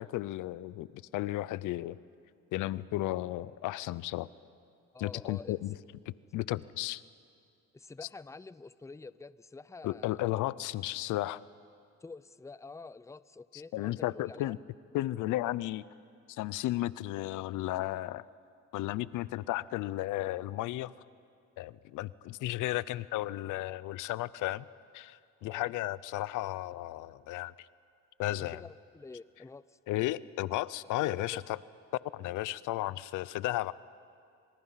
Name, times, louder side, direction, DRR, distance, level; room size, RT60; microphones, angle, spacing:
voice 1, 0.0-2.0 2.5-4.3 5.0-5.7 6.1-7.0 9.8-11.4 13.7-14.6 14.9-15.8 16.3-18.2 18.7-20.9 21.6-24.7 24.9-27.5 28.2-28.6 29.9-31.6 32.1-33.7, left 16 dB, 90° left, 19 dB, 0.6 m, -34 dB
voice 2, 4.9-5.6 7.7-10.3 12.0-14.5 25.4-25.7 28.4-29.8 31.0-31.4, left 3 dB, 10° left, 17 dB, 0.5 m, -48 dB
27.0 x 26.5 x 5.7 m, 2.4 s
cardioid pair, 90°, 30 cm